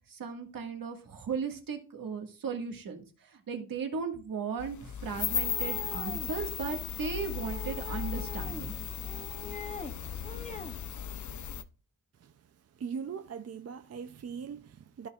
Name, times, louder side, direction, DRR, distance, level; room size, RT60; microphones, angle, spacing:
voice 1, 0.1-8.7, right 6 dB, 80° right, 1.8 m, -36 dB
sound 1, 4.6-11.6, left 8 dB, 60° left, 0.6 m, -36 dB
sound 2, 5.3-6.3 7.3-8.7 9.0-9.9 10.2-10.8, left 3 dB, 20° left, 0.7 m, -43 dB
voice 2, 12.7-15.1, right 6 dB, 45° right, 0.5 m, -40 dB
14.0 x 5.3 x 2.4 m
wide cardioid pair, 140°, 34 cm